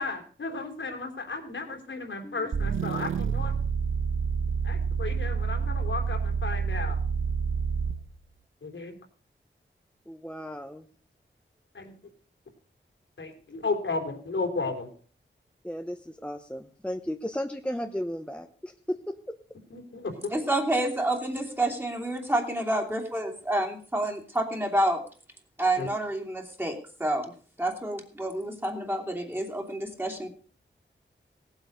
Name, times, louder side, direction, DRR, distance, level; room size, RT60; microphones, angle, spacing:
voice 1, 0.0-3.5 4.6-7.0 8.6-8.9 11.7-11.9 13.2-14.9 19.7-20.3 25.8-25.9, left 3 dB, 70° left, 3 dB, 3.4 m, -34 dB
voice 2, 2.1-2.7 10.1-10.8 15.6-19.1, equal, 5° left, 5 dB, 1.0 m, -35 dB
sound 1, 2.5-8.1, right 6 dB, 90° right, 1.0 m, -28 dB
voice 3, 20.3-25.0 25.6-27.3 27.6-30.3, right 1 dB, 10° right, 2 dB, 2.8 m, -28 dB
17.5 x 8.1 x 6.5 m, 0.43 s
wide cardioid pair, 105°, 20 cm